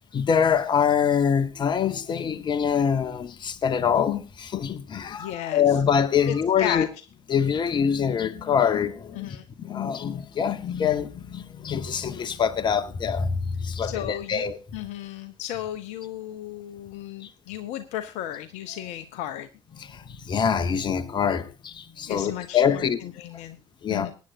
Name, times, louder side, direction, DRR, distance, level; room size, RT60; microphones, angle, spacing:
voice 1, 0.1-6.9 7.3-14.6 17.2-17.3 19.8-23.0 23.8-24.1, left 7 dB, 35° left, 1.3 m, -25 dB
voice 2, 5.2-5.6 6.3-6.9 9.1-9.4 13.8-14.5 14.7-19.5 22.1-23.6 23.9-24.1, left 12 dB, 55° left, 0.9 m, -34 dB
23.5 x 9.5 x 2.7 m
figure-of-eight pair, 60°, 14 cm